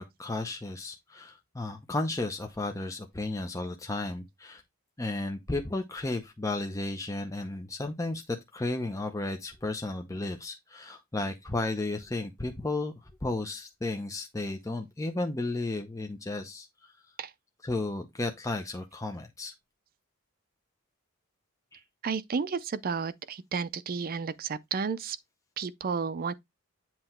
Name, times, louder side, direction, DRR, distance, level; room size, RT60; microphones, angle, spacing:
voice 1, 0.0-4.6 5.0-12.9 13.2-16.9 17.6-19.5, left 2 dB, 15° left, 0.6 m, -33 dB
voice 2, 22.0-25.2 25.6-26.3, right 5 dB, 45° right, 0.5 m, -32 dB
7.8 x 2.9 x 4.3 m
head